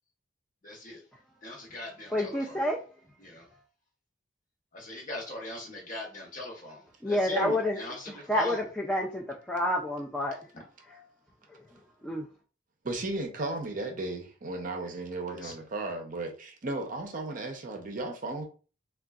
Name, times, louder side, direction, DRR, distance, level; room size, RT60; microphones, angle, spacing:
voice 1, 0.6-1.0 1.4-2.6 3.2-3.5 4.7-7.4 7.8-8.6 10.5-10.6 15.3-15.5, left 1 dB, 40° left, 0.9 m, -41 dB
voice 2, 2.1-2.8 7.0-7.8 8.1-10.4 10.9-11.0 12.0-12.2, left 1 dB, 5° left, 0.3 m, -29 dB
voice 3, 12.8-18.4, right 2 dB, 40° right, 0.6 m, -34 dB
3.6 x 2.3 x 2.3 m
head